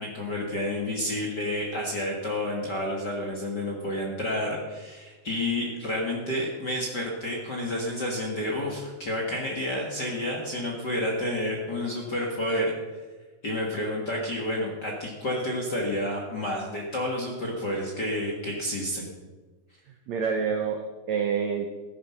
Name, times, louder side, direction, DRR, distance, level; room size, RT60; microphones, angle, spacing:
voice 1, 0.0-12.7 13.4-19.1, left 1 dB, 45° left, -1 dB, 1.5 m, -30 dB
voice 2, 19.9-21.7, right 6 dB, 80° right, 4 dB, 1.6 m, -28 dB
15.5 x 9.9 x 5.8 m, 1.3 s
omnidirectional pair, 4.6 m